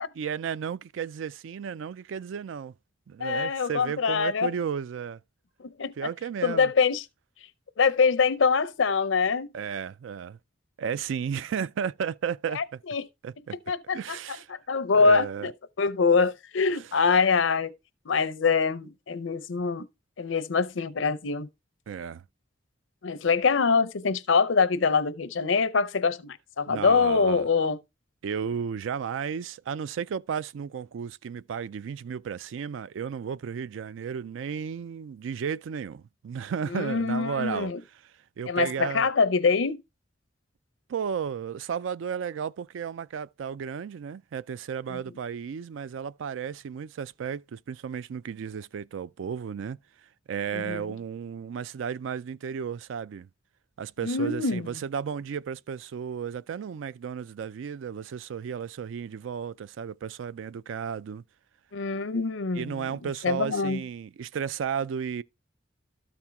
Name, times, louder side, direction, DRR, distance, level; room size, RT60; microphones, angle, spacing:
voice 1, 0.2-2.7 3.1-5.2 6.0-6.7 9.5-10.4 10.8-12.8 13.2-13.6 13.9-14.5 14.9-15.5 16.7-16.9 21.9-22.2 26.7-27.5 28.2-37.7 38.4-39.1 40.9-49.8 50.3-53.3 53.8-61.2 62.5-65.2, right 7 dB, 80° right, 0.3 m, -33 dB
voice 2, 3.2-4.5 5.6-6.1 6.4-7.0 7.8-9.5 12.5-13.1 13.7-14.2 14.7-15.5 15.8-17.7 18.1-19.9 20.2-21.5 23.0-27.8 36.7-37.8 38.5-39.8 44.9-45.0 50.5-50.8 54.0-54.8 61.7-63.8, left 5 dB, 80° left, 0.6 m, -24 dB
13.0 x 4.3 x 3.4 m
head